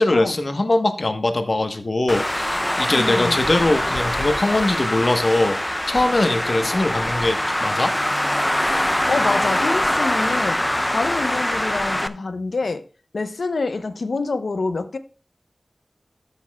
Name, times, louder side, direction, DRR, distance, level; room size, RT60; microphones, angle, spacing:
voice 1, 0.0-5.6 5.9-7.9 8.6-8.9, left 2 dB, 50° left, 1.1 m, -21 dB
Traffic noise roadway noise, 2.1-12.1, left 1 dB, 15° left, 0.5 m, -23 dB
voice 2, 2.9-3.4 9.1-12.8 13.1-15.0, left 3 dB, 90° left, 0.8 m, -26 dB
13.5 x 7.1 x 2.3 m
wide cardioid pair, 70°, 0 cm